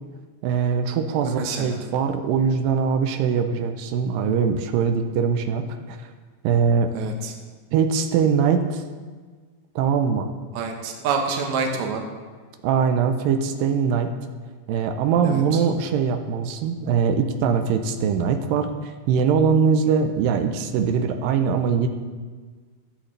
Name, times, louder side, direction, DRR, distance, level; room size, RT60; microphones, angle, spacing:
voice 1, 0.4-6.0 6.4-6.9 7.7-8.8 9.8-10.3 12.6-14.1 14.7-21.9, right 6 dB, 90° right, 6 dB, 2.5 m, -22 dB
voice 2, 1.2-1.8 6.9-7.3 10.5-12.0 15.2-15.6, right 5 dB, 65° right, 2 dB, 2.3 m, -27 dB
15.0 x 8.5 x 3.3 m, 1.5 s
omnidirectional pair, 3.9 m